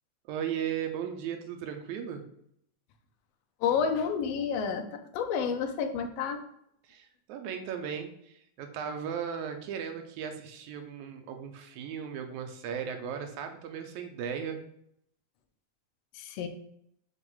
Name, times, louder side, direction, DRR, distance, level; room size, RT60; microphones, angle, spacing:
voice 1, 0.3-2.2 6.9-14.6, right 8 dB, 75° right, 6 dB, 1.9 m, -36 dB
voice 2, 3.6-6.4 16.1-16.5, left 6 dB, 75° left, 6 dB, 1.5 m, -30 dB
6.1 x 3.0 x 5.4 m, 0.72 s
omnidirectional pair, 3.5 m